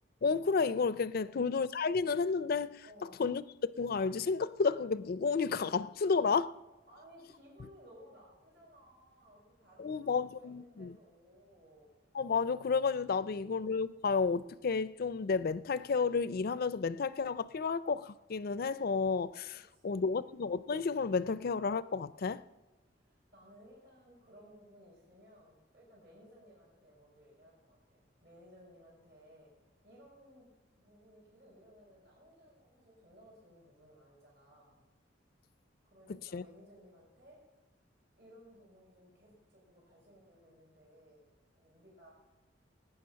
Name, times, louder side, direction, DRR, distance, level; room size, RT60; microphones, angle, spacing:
voice 1, 0.2-2.8 3.2-3.5 3.8-6.5 9.8-11.0 12.1-22.4 36.3-36.4, left 5 dB, 55° left, 0.4 m, -31 dB
voice 2, 1.1-1.5 2.8-3.2 6.0-6.3 6.9-12.0 13.2-13.5 19.7-20.3 22.9-30.5 30.8-34.9 35.8-37.4 38.2-41.3 41.5-42.1, equal, 65° right, 5.6 m, -59 dB
20.0 x 9.2 x 5.8 m
head